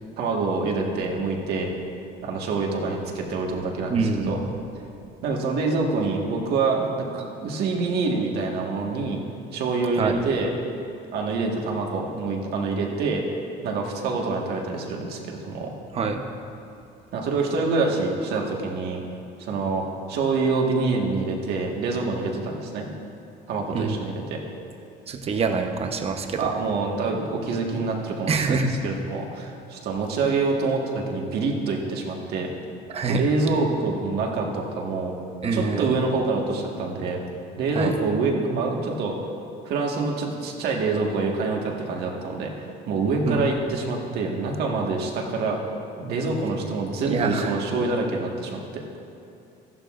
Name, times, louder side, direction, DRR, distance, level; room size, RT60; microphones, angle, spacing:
voice 1, 0.2-1.7 2.2-4.4 5.2-9.2 9.5-10.5 11.1-13.2 13.6-15.7 17.1-19.0 19.4-22.9 23.5-24.4 26.4-32.5 33.1-35.1 35.5-37.2 37.6-39.1 39.6-45.6 46.0-48.8, right 3 dB, 70° right, 0 dB, 1.6 m, -26 dB
voice 2, 3.9-4.4 10.0-10.2 15.9-16.2 23.7-24.0 25.1-26.5 28.3-28.7 32.9-33.2 35.4-36.0 37.7-37.9 43.2-43.4 47.0-47.5, right 4 dB, 35° right, 5 dB, 0.9 m, -25 dB
14.5 x 11.5 x 2.5 m, 2.6 s
cardioid pair, 120°, 17 cm